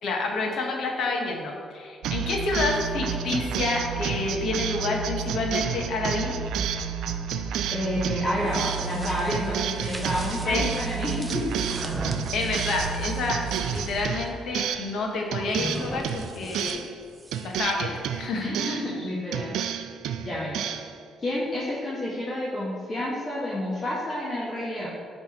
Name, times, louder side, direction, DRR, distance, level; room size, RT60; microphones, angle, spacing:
voice 1, 0.0-6.4 10.5-10.7 12.3-16.8 17.4-18.9, left 3 dB, 70° left, 1 dB, 1.2 m, -29 dB
sound 1, 2.0-15.0 15.3-17.0 17.3-19.0 19.3-20.9, right 8 dB, 85° right, 0.4 m, -30 dB
voice 2, 7.7-11.5 18.4-19.5 20.2-20.6 21.2-24.9, left 1 dB, 35° left, -6 dB, 1.5 m, -29 dB
sound 2, 8.3-14.0 15.4-17.7, right 1 dB, 15° right, 0.6 m, -39 dB
9.7 x 3.5 x 4.3 m, 2.3 s
cardioid pair, 90°, 0 cm